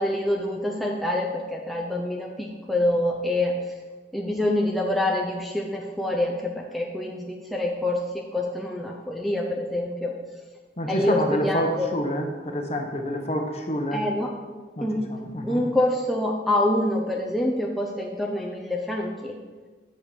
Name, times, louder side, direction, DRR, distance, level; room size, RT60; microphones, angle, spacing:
voice 1, 0.0-3.6 4.1-8.0 8.3-10.1 10.9-11.9 13.9-14.3 14.8-15.0 15.4-19.3, left 1 dB, ahead, -2 dB, 0.6 m, -26 dB
voice 2, 10.8-14.0 14.8-15.6, equal, 35° left, 3 dB, 0.9 m, -28 dB
6.4 x 5.6 x 6.7 m, 1.4 s
head